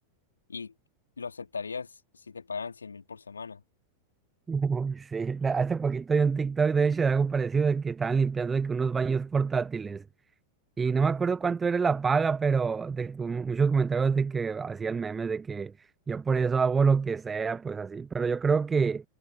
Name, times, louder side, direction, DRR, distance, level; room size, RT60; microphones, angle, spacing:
voice 1, 1.2-3.6, left 5 dB, 75° left, 2.8 m, -38 dB
voice 2, 4.5-10.0 10.8-15.7 16.1-19.0, right 5 dB, 15° right, 0.9 m, -26 dB
figure-of-eight pair, 90°, 0 cm